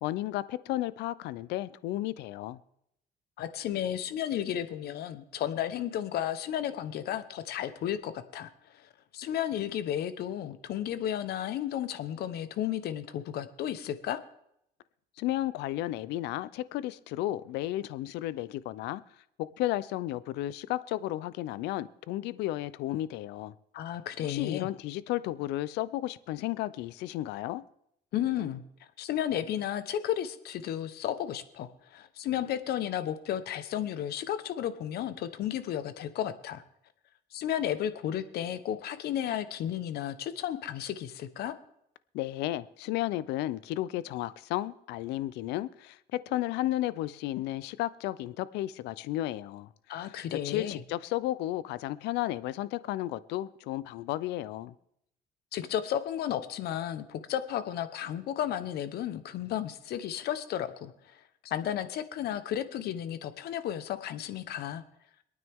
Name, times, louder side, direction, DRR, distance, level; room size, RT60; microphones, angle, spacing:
voice 1, 0.0-2.6 15.2-19.0 19.4-23.5 24.3-27.6 42.1-49.7 49.9-54.7, left 15 dB, 90° left, 0.6 m, -33 dB
voice 2, 3.4-14.2 23.7-24.7 28.1-28.6 29.0-36.6 37.3-41.5 49.9-50.8 55.5-64.8, left 10 dB, 70° left, 1.1 m, -33 dB
25.0 x 9.3 x 3.6 m
cardioid pair, 110°, 17 cm